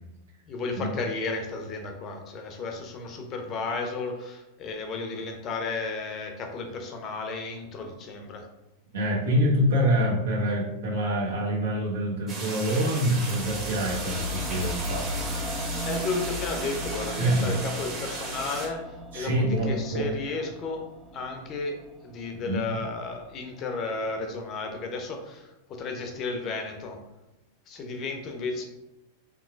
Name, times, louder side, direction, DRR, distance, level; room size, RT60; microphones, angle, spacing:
voice 1, 0.5-8.5 15.8-27.0 27.7-28.7, left 3 dB, 35° left, 4 dB, 0.6 m, -33 dB
voice 2, 8.9-15.3 17.2-17.5 19.1-20.1 22.5-22.6, equal, 65° right, -4 dB, 1.1 m, -26 dB
sound 1, 12.3-18.7, right 2 dB, 25° right, 1.3 m, -36 dB
sound 2, 13.3-23.5 23.7-23.8, equal, 10° right, 0.4 m, -37 dB
3.5 x 3.1 x 2.4 m, 1.0 s
figure-of-eight pair, 90°, 0 cm